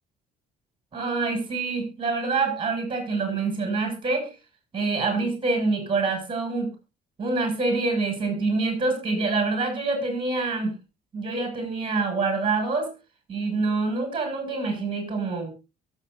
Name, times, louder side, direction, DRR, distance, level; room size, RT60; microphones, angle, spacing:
voice 1, 0.9-4.3 4.7-6.7 7.2-10.7 11.1-12.9 13.3-15.5, right 3 dB, 30° right, 5 dB, 7.5 m, -26 dB
23.0 x 8.4 x 2.7 m, 0.28 s
cardioid pair, 110°, 17 cm